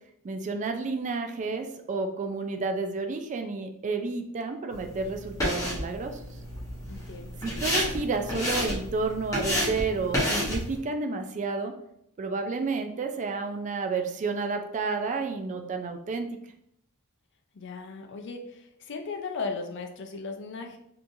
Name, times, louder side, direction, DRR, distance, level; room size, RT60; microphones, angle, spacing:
voice 1, 0.2-6.2 7.4-11.7 12.2-16.3, right 4 dB, 35° right, 6 dB, 0.3 m, -31 dB
sound 1, 4.7-10.8, left 1 dB, 15° left, 1.0 m, -31 dB
voice 2, 6.9-7.4 17.5-20.8, left 4 dB, 55° left, 4 dB, 0.5 m, -37 dB
3.7 x 2.8 x 2.6 m, 0.74 s
head